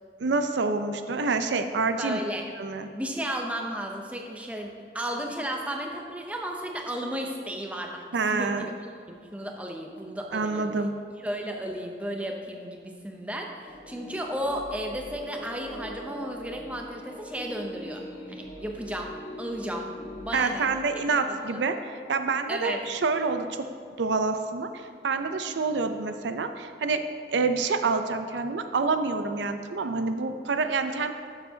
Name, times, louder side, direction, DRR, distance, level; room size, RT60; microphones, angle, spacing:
voice 1, 0.2-2.2 2.6-2.9 8.1-8.7 10.3-10.9 20.3-23.5 24.0-31.1, right 4 dB, 90° right, 8 dB, 0.5 m, -27 dB
voice 2, 2.0-2.4 3.0-8.7 9.1-10.7 11.2-18.0 18.3-19.1 19.4-19.9 20.2-20.7 21.1-21.6 22.5-22.8, equal, 10° right, 1 dB, 0.6 m, -34 dB
sound 1, 13.7-20.7, equal, 35° left, 1.4 m, -42 dB
12.0 x 6.9 x 2.8 m, 2.2 s
head